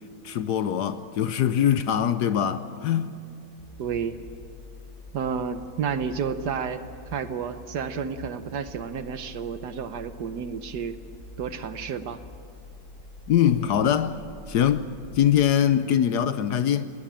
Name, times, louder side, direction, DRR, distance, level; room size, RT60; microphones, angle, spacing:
voice 1, 0.2-3.2 13.3-14.9 15.1-16.9, left 10 dB, 65° left, 1.2 m, -23 dB
sound 1, 3.6-15.5, left 2 dB, 30° left, 1.5 m, -46 dB
voice 2, 3.8-4.2 5.1-6.8 7.1-11.0 11.4-12.2, right 6 dB, 65° right, 1.4 m, -31 dB
20.0 x 18.5 x 8.9 m
omnidirectional pair, 2.1 m